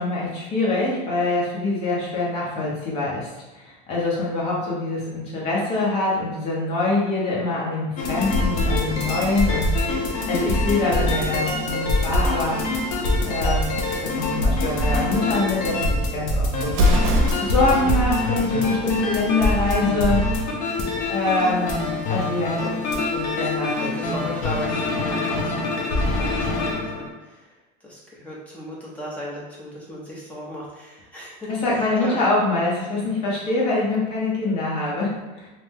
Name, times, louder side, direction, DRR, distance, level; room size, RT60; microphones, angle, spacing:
voice 1, 0.0-3.3 3.5-9.7 10.3-12.6 13.2-16.8 17.4-20.3 21.1-21.8 22.1-24.3 31.5-35.5, left 2 dB, 30° left, -5 dB, 0.8 m, -24 dB
sound 1, 8.0-27.1, left 2 dB, 60° left, 0.6 m, -24 dB
Explosion, 16.7-17.8, left 1 dB, 90° right, 0.5 m, -20 dB
voice 2, 23.3-32.2 32.5-32.6, equal, 10° left, -6 dB, 0.6 m, -37 dB
2.8 x 2.1 x 3.2 m, 1.1 s
cardioid pair, 175°, 19 cm